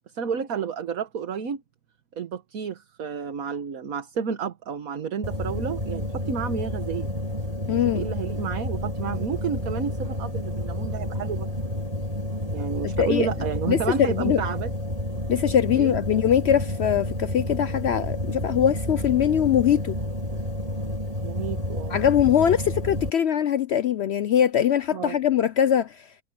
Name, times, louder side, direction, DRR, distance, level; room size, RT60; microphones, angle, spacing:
voice 1, 0.1-1.6 2.2-7.1 7.7-11.5 12.5-14.7 15.8-16.0 21.2-22.0 24.9-25.2, right 6 dB, 70° right, 1.7 m, -31 dB
sound 1, 5.2-23.1, equal, 25° right, 3.2 m, -30 dB
voice 2, 7.7-8.1 12.8-13.3 13.7-14.4 15.3-20.0 21.9-26.0, left 9 dB, 65° left, 0.7 m, -22 dB
omnidirectional pair, 1.6 m